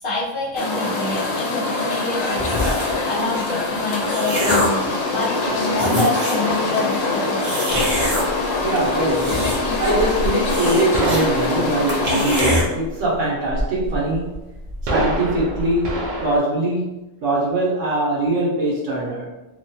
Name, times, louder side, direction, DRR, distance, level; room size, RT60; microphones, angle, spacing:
voice 1, 0.0-2.6 3.0-7.6, left 2 dB, 55° left, -8 dB, 0.7 m, -27 dB
sound 1, 0.6-12.4, left 3 dB, 85° left, 0.9 m, -24 dB
sound 2, 2.4-3.0 3.7-4.8 5.4-5.5 5.7-6.5 7.4-8.2 8.9-9.8 10.1-10.2 10.5-11.2 11.5-11.6 11.9-12.6, left 1 dB, 35° right, 0.7 m, -23 dB
sound 3, 7.7-16.4, right 1 dB, 60° right, 0.5 m, -28 dB
voice 2, 8.6-14.5 14.8-19.4, right 1 dB, 80° right, -3 dB, 1.2 m, -22 dB
2.8 x 2.2 x 2.7 m, 1.0 s
omnidirectional pair, 1.3 m